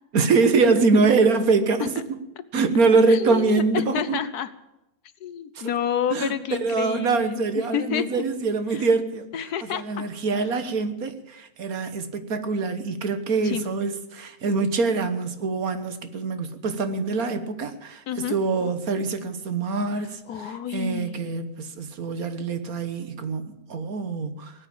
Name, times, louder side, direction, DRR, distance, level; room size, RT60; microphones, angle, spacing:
voice 1, 0.1-1.9 2.5-4.2 5.5-5.6 6.1-6.3 6.6-9.3 9.7-24.5, right 4 dB, 65° right, 9 dB, 1.6 m, -24 dB
voice 2, 3.1-4.5 5.2-8.2 8.7-8.9 9.3-10.1 13.4-13.6 18.1-18.4 20.3-21.2, left 9 dB, 75° left, 14 dB, 1.4 m, -29 dB
18.0 x 8.9 x 8.6 m, 0.91 s
omnidirectional pair, 1.7 m